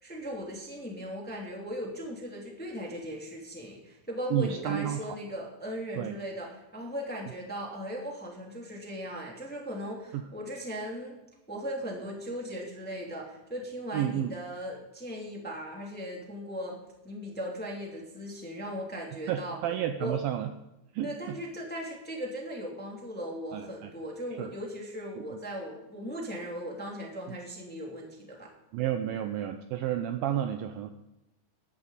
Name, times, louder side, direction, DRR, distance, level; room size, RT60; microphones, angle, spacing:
voice 1, 0.0-11.2 11.5-16.8 17.0-19.6 20.0-20.2 21.0-28.5, equal, 5° left, -1 dB, 1.7 m, -38 dB
voice 2, 4.3-5.0 6.0-6.2 10.1-10.2 13.9-14.4 19.3-20.5 20.9-21.4 23.5-23.9 24.4-24.5 28.7-30.9, right 11 dB, 85° right, 7 dB, 2.1 m, -31 dB
19.0 x 13.5 x 4.1 m, 0.92 s
omnidirectional pair, 5.0 m